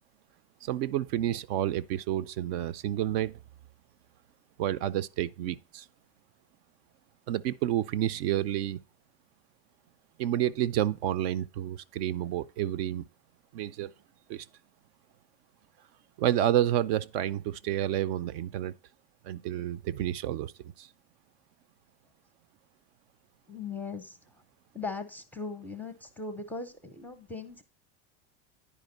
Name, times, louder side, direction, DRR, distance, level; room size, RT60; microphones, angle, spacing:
voice 1, 0.6-3.4 4.6-5.9 7.3-8.8 10.2-13.0 13.5-13.9 14.3-14.5 16.2-18.7 19.2-20.5 20.8-20.9, right 12 dB, 60° right, 0.6 m, -29 dB
voice 2, 23.5-24.2 24.7-27.6, left 4 dB, 5° left, 0.6 m, -39 dB
10.0 x 5.1 x 5.1 m
supercardioid pair, 160°, 34 cm